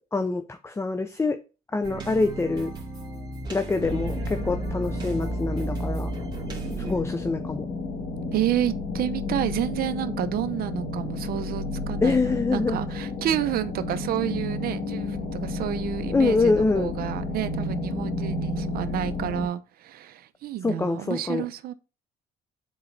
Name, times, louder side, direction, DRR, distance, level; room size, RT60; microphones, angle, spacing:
voice 1, 0.1-1.4 1.7-2.7 3.5-6.1 6.8-7.7 12.0-12.8 16.1-16.9 20.6-21.5, left 3 dB, 15° left, 0.6 m, -25 dB
sound 1, 1.8-7.0, right 3 dB, 25° right, 2.6 m, -33 dB
sound 2, 3.8-19.5, left 2 dB, 55° left, 1.6 m, -32 dB
voice 2, 8.3-21.7, right 12 dB, 60° right, 0.7 m, -30 dB
9.6 x 4.1 x 3.3 m
cardioid pair, 110°, 17 cm